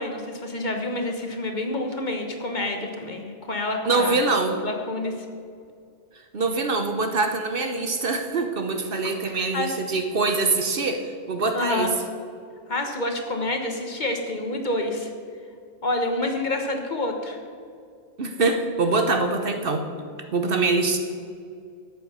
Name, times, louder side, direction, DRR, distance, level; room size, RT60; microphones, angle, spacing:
voice 1, 0.0-4.2 4.6-5.1 9.2-9.7 11.5-11.9 12.7-15.1 15.8-17.4, left 2 dB, 40° left, 4 dB, 1.2 m, -28 dB
voice 2, 3.8-4.6 6.3-11.0 11.3-11.9 18.2-19.9 20.3-21.0, right 3 dB, 55° right, 6 dB, 1.1 m, -24 dB
13.0 x 8.0 x 5.6 m, 2.4 s
omnidirectional pair, 1.2 m